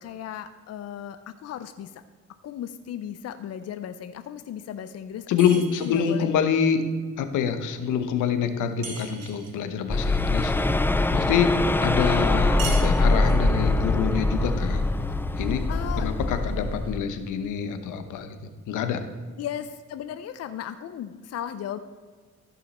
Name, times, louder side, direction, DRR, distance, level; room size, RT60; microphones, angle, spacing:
voice 1, 0.0-2.0 2.4-6.3 15.0-15.2 15.7-16.1 19.4-21.8, left 9 dB, 55° left, 10 dB, 0.6 m, -36 dB
voice 2, 5.3-6.8 7.2-10.5 11.1-11.6 11.8-14.9 15.4-15.7 16.0-18.4 18.7-19.0, left 7 dB, 85° left, 9 dB, 1.0 m, -26 dB
sound 1, 5.4-6.2 8.8-9.6 12.6-13.5, right 4 dB, 55° right, 2.2 m, -38 dB
sound 2, 9.9-17.0, left 2 dB, 5° left, 0.4 m, -23 dB
14.0 x 5.6 x 4.2 m, 1.5 s
cardioid pair, 90°, 30 cm